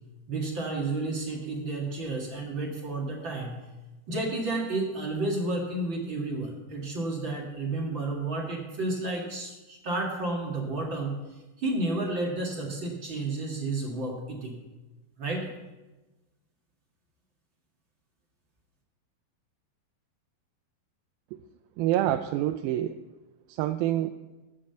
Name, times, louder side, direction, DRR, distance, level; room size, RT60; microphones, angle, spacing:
voice 1, 0.3-3.6 4.1-14.6 15.2-15.5, right 2 dB, 40° right, -1 dB, 2.1 m, -31 dB
voice 2, 21.8-22.9 23.5-24.1, right 13 dB, 85° right, 7 dB, 2.4 m, -26 dB
13.0 x 7.5 x 7.7 m, 1.1 s
omnidirectional pair, 4.2 m